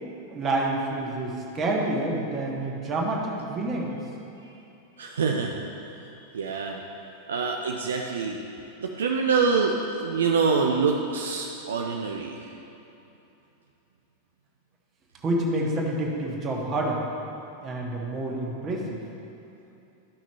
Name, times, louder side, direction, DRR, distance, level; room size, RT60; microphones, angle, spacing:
voice 1, 0.3-4.0 15.2-17.0 17.6-19.0, right 2 dB, 25° right, -2 dB, 1.4 m, -28 dB
voice 2, 5.0-6.8 7.3-8.4 8.8-12.4, right 5 dB, 65° right, 1 dB, 0.5 m, -26 dB
12.5 x 5.8 x 3.0 m, 2.9 s
figure-of-eight pair, 90°, 0 cm